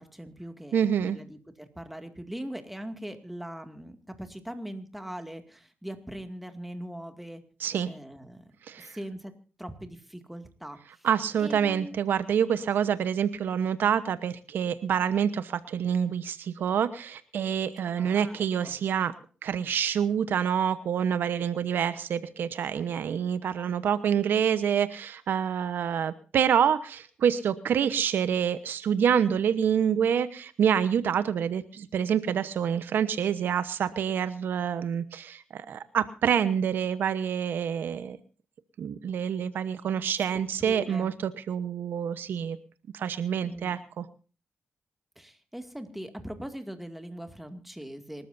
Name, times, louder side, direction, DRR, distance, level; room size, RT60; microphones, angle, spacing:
voice 1, 0.0-7.4 7.8-8.5 8.8-9.3 9.6-11.1 11.4-11.9 17.9-18.7 40.6-41.1 43.4-43.7 45.2-48.3, right 1 dB, 5° right, 6 dB, 2.2 m, -41 dB
voice 2, 0.7-1.2 7.6-7.9 8.7-8.9 11.0-19.1 19.4-38.2 38.8-42.6 42.9-44.0, right 8 dB, 80° right, 12 dB, 1.0 m, -27 dB
27.0 x 13.5 x 2.7 m, 0.36 s
cardioid pair, 90°, 3 cm